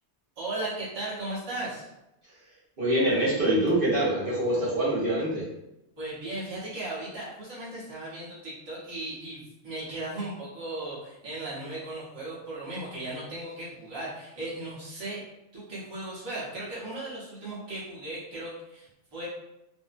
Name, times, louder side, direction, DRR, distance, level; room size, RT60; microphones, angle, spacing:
voice 1, 0.4-1.9 6.0-15.2 15.5-19.3, right 2 dB, 25° right, -8 dB, 0.7 m, -36 dB
voice 2, 2.8-5.4, right 1 dB, 55° right, -8 dB, 0.9 m, -25 dB
2.5 x 2.0 x 2.4 m, 0.91 s
omnidirectional pair, 1.2 m